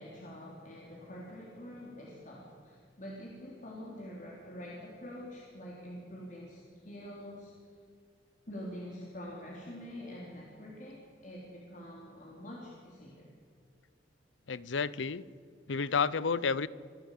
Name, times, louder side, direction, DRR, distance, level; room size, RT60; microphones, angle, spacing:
voice 1, 0.0-7.5 8.5-13.3, equal, 45° left, -3 dB, 3.7 m, -46 dB
voice 2, 14.5-15.2 15.7-16.7, left 5 dB, 90° left, 19 dB, 0.7 m, -30 dB
25.5 x 15.5 x 8.4 m, 2.3 s
head